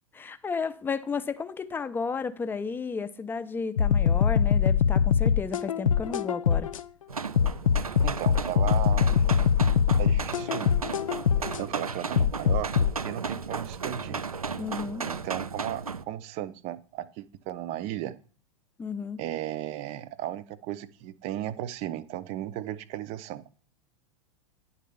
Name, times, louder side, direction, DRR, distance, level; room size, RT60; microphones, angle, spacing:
voice 1, 0.1-6.7 14.6-15.1 18.8-19.2, left 5 dB, 10° left, 0.6 m, -33 dB
sound 1, 3.8-6.8 7.4-11.6 12.2-12.9, left 7 dB, 70° left, 0.5 m, -23 dB
sound 2, 7.1-16.0, right 5 dB, 85° right, 0.5 m, -35 dB
voice 2, 8.0-9.3 10.0-10.7 11.6-14.2 15.0-18.2 19.2-23.5, right 12 dB, 35° right, 0.6 m, -35 dB
9.9 x 4.0 x 6.9 m
figure-of-eight pair, 90°, 18 cm